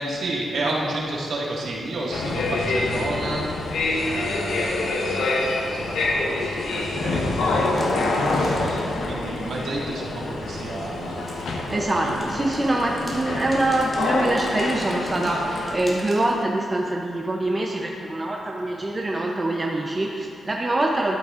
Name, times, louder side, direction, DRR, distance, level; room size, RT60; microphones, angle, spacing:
voice 1, 0.0-3.8 4.0-7.9 8.2-12.2 18.7-18.8, right 2 dB, 75° right, -4 dB, 1.8 m, -31 dB
sound 1, 2.1-15.7, left 2 dB, 90° left, 0.9 m, -26 dB
sound 2, 7.7-9.7 11.1-16.4, left 1 dB, 30° left, 1.7 m, -41 dB
voice 2, 11.7-21.2, right 1 dB, 20° right, -1 dB, 0.6 m, -24 dB
12.5 x 8.2 x 2.5 m, 2.5 s
wide cardioid pair, 125°, 0 cm